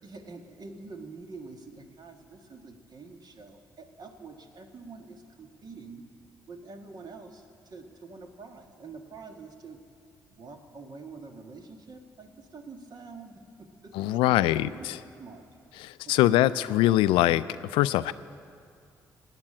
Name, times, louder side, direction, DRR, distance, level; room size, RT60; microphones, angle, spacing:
voice 1, 0.0-6.1 6.5-9.8 10.3-15.5 16.0-16.6, right 4 dB, 50° right, 5 dB, 1.9 m, -46 dB
voice 2, 13.9-15.0 15.8-17.4 17.7-18.1, left 15 dB, 75° left, 16 dB, 0.4 m, -23 dB
17.0 x 9.1 x 8.9 m, 2.4 s
hypercardioid pair, 45°, 9 cm